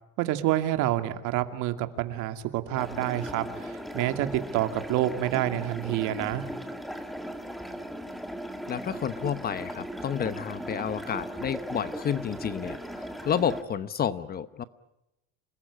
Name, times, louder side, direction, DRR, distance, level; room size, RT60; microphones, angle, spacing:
voice 1, 0.2-6.5, right 13 dB, 60° right, 8 dB, 2.4 m, -28 dB
sound 1, 2.8-13.6, equal, ahead, 1.8 m, -38 dB
voice 2, 8.7-14.6, left 8 dB, 25° left, 14 dB, 0.9 m, -30 dB
28.0 x 20.0 x 9.9 m, 0.90 s
cardioid pair, 155°, 34 cm